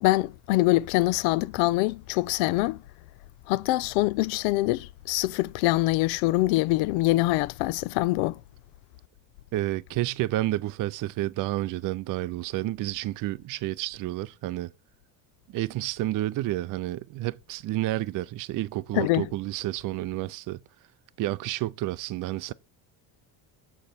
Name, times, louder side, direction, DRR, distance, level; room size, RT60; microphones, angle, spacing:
voice 1, 0.0-2.8 3.5-8.4 18.9-19.3, left 18 dB, 85° left, 0.5 m, -24 dB
voice 2, 9.5-14.7 15.5-20.6 21.2-22.5, right 16 dB, 45° right, 0.4 m, -30 dB
6.9 x 6.5 x 4.1 m
supercardioid pair, 95°, 47 cm